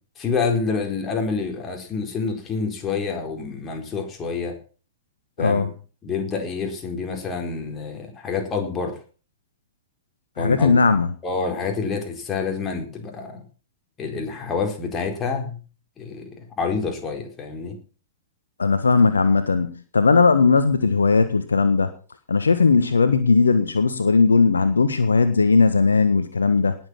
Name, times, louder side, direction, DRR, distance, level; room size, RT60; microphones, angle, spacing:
voice 1, 0.2-4.6 5.4-5.6 6.0-9.0 10.4-10.8 11.2-13.4 14.0-15.6 16.0-17.8, left 5 dB, 20° left, 3 dB, 4.4 m, -27 dB
voice 2, 5.4-5.7 10.4-11.1 18.6-21.9 22.3-26.8, left 4 dB, 70° left, 10 dB, 1.4 m, -18 dB
19.5 x 7.9 x 5.9 m, 0.38 s
figure-of-eight pair, 105°, 0 cm